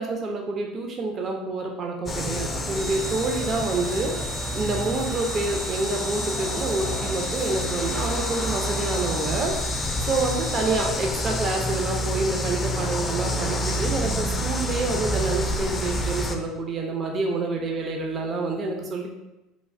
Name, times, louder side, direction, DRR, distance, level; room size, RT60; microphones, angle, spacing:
voice 1, 0.0-4.1 4.5-9.5 10.0-19.1, right 3 dB, 40° right, 2 dB, 0.4 m, -27 dB
sound 1, 2.1-16.4, left 1 dB, 30° left, 0.3 m, -28 dB
sound 2, 2.7-10.8, right 7 dB, 90° right, 1.5 m, -40 dB
3.1 x 2.2 x 2.5 m, 0.98 s
hypercardioid pair, 80°, 0 cm